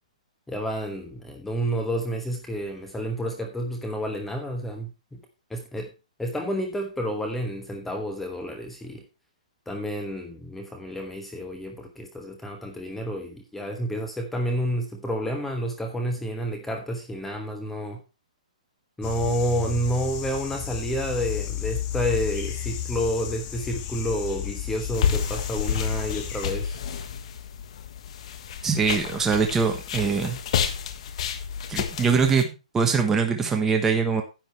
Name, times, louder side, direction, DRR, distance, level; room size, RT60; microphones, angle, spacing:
voice 1, 0.5-5.2 5.5-5.9 6.2-9.0 9.7-18.0 19.0-26.8, equal, 5° left, 3 dB, 1.1 m, -30 dB
sound 1, 19.0-26.5, left 12 dB, 30° left, 1.7 m, -33 dB
sound 2, 24.9-32.4, left 7 dB, 55° left, 1.4 m, -30 dB
voice 2, 28.6-30.4 31.7-34.2, right 5 dB, 10° right, 4 dB, 1.2 m, -23 dB
10.5 x 8.9 x 3.3 m, 0.28 s
hypercardioid pair, 145°, 4 cm